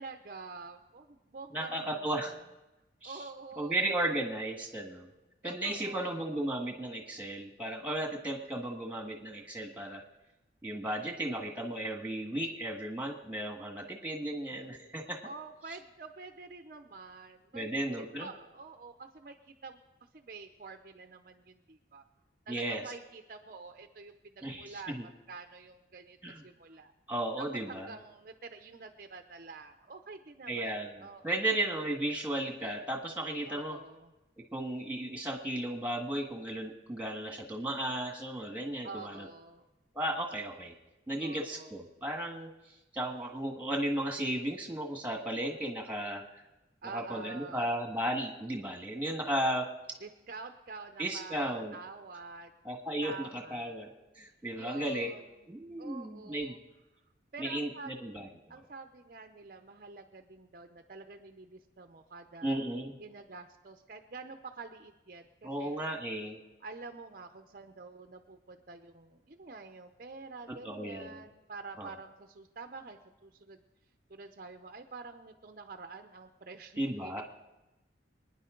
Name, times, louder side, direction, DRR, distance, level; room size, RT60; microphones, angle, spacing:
voice 1, 0.0-2.4 3.0-4.1 5.4-6.4 14.5-14.6 15.2-17.6 17.9-19.8 20.1-22.0 22.5-26.2 26.4-26.9 27.4-31.4 33.5-34.1 38.8-39.6 41.2-41.8 46.8-47.7 50.0-52.5 53.0-53.8 54.6-55.5 55.8-56.6 57.3-57.9 58.5-62.6 63.0-65.8 66.6-73.6 74.1-77.2, right 4 dB, 45° right, 6 dB, 0.6 m, -48 dB
voice 2, 1.5-2.3 3.0-3.1 3.6-5.1 5.4-10.0 10.6-15.2 17.5-18.3 22.5-22.8 24.4-25.0 26.2-26.4 27.1-27.9 30.5-33.8 34.5-39.3 39.9-40.7 41.1-42.5 42.9-46.2 46.9-49.7 51.0-51.8 52.6-53.9 54.2-55.1 55.5-56.6 57.4-58.3 62.4-62.9 65.4-66.4 70.6-71.2 71.8-71.9 76.8-77.2, right 1 dB, 10° right, 2 dB, 1.7 m, -35 dB
25.0 x 10.0 x 3.8 m, 1.0 s
head